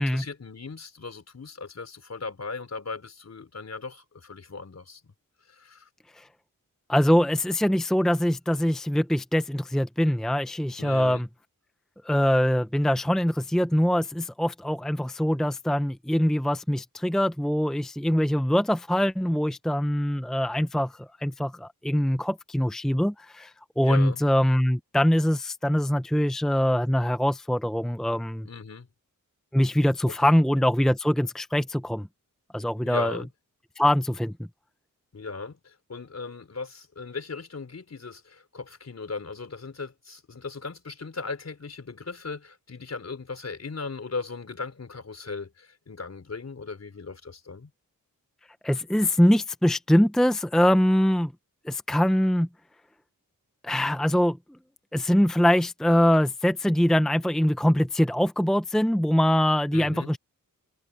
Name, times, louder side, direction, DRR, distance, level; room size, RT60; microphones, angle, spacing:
voice 1, 0.0-5.1 5.5-5.9 10.8-11.2 23.8-24.2 28.4-28.9 30.2-30.3 32.8-33.3 35.1-47.7 59.7-60.1, left 4 dB, 50° left, 4.5 m, -38 dB
voice 2, 6.9-11.3 12.0-28.5 29.5-32.1 32.5-33.2 33.8-34.3 48.6-51.3 51.7-52.5 53.6-54.4 54.9-60.2, equal, ahead, 0.7 m, -23 dB
wide cardioid pair, 90°, 34 cm